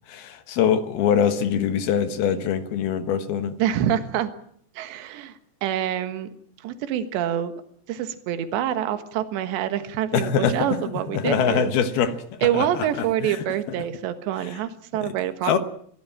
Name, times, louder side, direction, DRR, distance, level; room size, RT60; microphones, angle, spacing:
voice 1, 0.1-3.6 10.1-10.7 11.1-13.4 15.0-15.1 15.4-15.6, left 7 dB, 65° left, 10 dB, 3.0 m, -23 dB
voice 2, 3.6-4.3 4.8-5.3 5.6-6.3 6.6-7.5 7.9-11.7 12.4-15.5, right 10 dB, 80° right, 9 dB, 3.7 m, -26 dB
24.5 x 17.0 x 8.8 m, 0.63 s
omnidirectional pair, 5.1 m